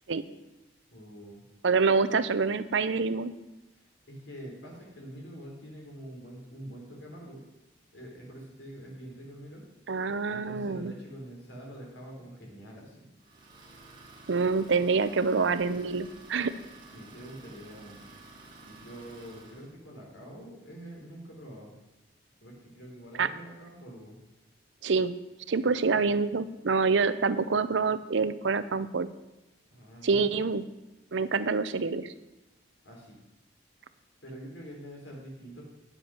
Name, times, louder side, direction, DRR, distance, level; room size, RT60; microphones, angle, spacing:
voice 1, 0.9-1.4 3.7-7.4 7.9-9.6 10.3-13.1 16.9-18.0 18.6-21.7 22.4-24.2 29.7-30.3 32.8-33.2 34.2-35.6, right 1 dB, 80° left, -1 dB, 3.6 m, -45 dB
voice 2, 1.6-3.3 9.9-10.9 14.3-16.5 23.2-23.3 24.8-25.2 25.5-29.1 30.0-30.6 31.1-32.1, right 4 dB, 80° right, 13 dB, 0.6 m, -26 dB
Idling, 13.2-19.7, right 3 dB, 25° right, 1.7 m, -51 dB
9.7 x 7.7 x 6.2 m, 0.98 s
head